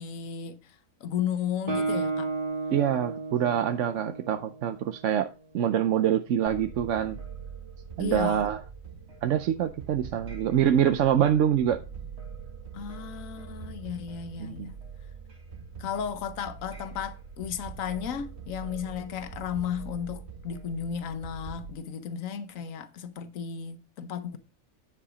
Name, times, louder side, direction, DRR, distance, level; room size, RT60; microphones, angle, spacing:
voice 1, 0.0-2.3 8.0-8.5 12.7-14.8 15.8-24.4, left 8 dB, 75° left, 1.3 m, -34 dB
Guitar, 1.7-5.3, right 3 dB, 35° right, 2.1 m, -33 dB
voice 2, 2.7-5.3 5.5-7.2 8.0-8.6 9.2-11.8 14.4-14.7, right 9 dB, 70° right, 0.9 m, -25 dB
sound 1, 6.5-21.7, right 6 dB, 55° right, 1.6 m, -43 dB
9.9 x 4.9 x 5.0 m
omnidirectional pair, 1.4 m